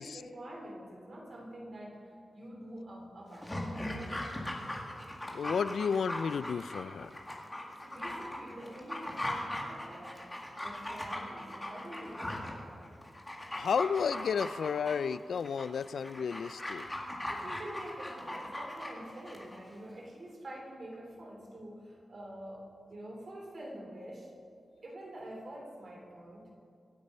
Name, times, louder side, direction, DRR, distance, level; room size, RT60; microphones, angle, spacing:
voice 1, 0.0-4.3 7.8-10.2 10.5-13.0 17.2-24.3 24.8-26.5, right 1 dB, 40° right, -1 dB, 3.4 m, -46 dB
Dog, 3.3-19.6 19.9-20.0, left 1 dB, 15° left, 1.9 m, -39 dB
voice 2, 5.3-7.1 13.5-16.9, left 6 dB, 80° left, 16 dB, 0.4 m, -32 dB
25.5 x 8.6 x 5.5 m, 2.4 s
wide cardioid pair, 165°, 0 cm